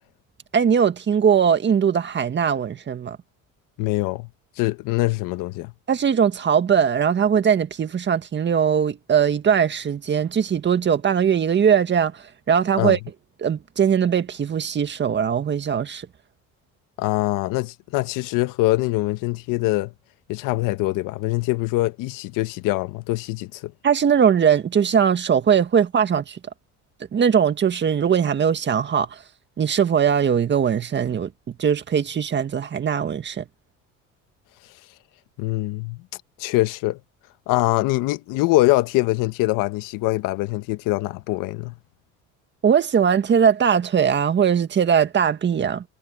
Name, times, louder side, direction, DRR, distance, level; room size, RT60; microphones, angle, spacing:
voice 1, 0.5-3.2 5.9-13.0 13.4-16.1 23.8-26.4 27.1-29.2 29.6-33.4 42.6-45.8, right 7 dB, 35° right, 1.7 m, -20 dB
voice 2, 3.8-4.3 4.6-5.7 12.8-13.0 17.0-19.9 20.3-23.7 35.4-36.0 36.4-37.0 37.5-41.7, left 19 dB, 80° left, 1.3 m, -23 dB
cardioid pair, 115°, 32 cm